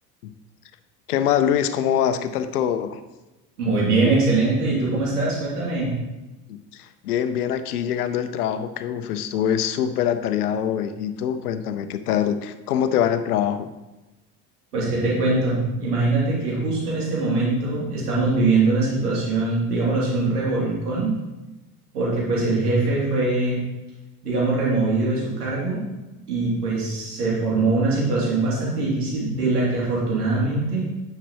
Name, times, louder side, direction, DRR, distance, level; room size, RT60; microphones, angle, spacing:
voice 1, 1.1-3.0 6.5-13.7, left 9 dB, 85° left, 10 dB, 0.7 m, -24 dB
voice 2, 3.6-5.9 14.7-21.1 21.9-23.6 24.2-25.8 26.3-30.8, right 3 dB, 90° right, -6 dB, 2.8 m, -22 dB
9.9 x 6.8 x 3.0 m, 1.0 s
hypercardioid pair, 65°, 44 cm